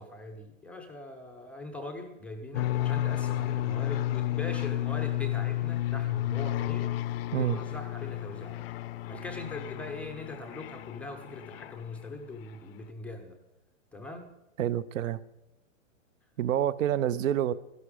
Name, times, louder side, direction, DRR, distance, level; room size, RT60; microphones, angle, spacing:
voice 1, 0.0-7.0 7.4-8.7 9.1-13.4 13.9-14.3, left 2 dB, 5° left, 2 dB, 0.4 m, -41 dB
sound 1, 2.5-12.1, left 13 dB, 50° left, 0.5 m, -32 dB
voice 2, 14.6-15.2 16.4-17.5, right 10 dB, 75° right, 17 dB, 0.7 m, -27 dB
12.5 x 11.0 x 5.0 m, 0.94 s
hypercardioid pair, 150°, 39 cm